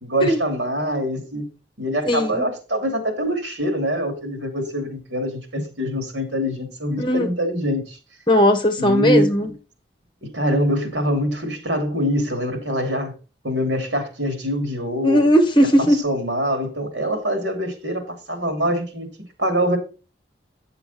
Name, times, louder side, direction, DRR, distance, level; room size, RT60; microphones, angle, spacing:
voice 1, 0.0-1.5 1.8-8.0 8.8-9.3 10.3-13.1 13.4-15.2 15.8-19.1 19.4-19.8, equal, 80° right, 2.9 m, -24 dB
voice 2, 2.0-2.5 7.0-7.3 8.3-9.5 15.0-16.0, equal, 25° left, 1.3 m, -17 dB
9.3 x 6.9 x 4.3 m
head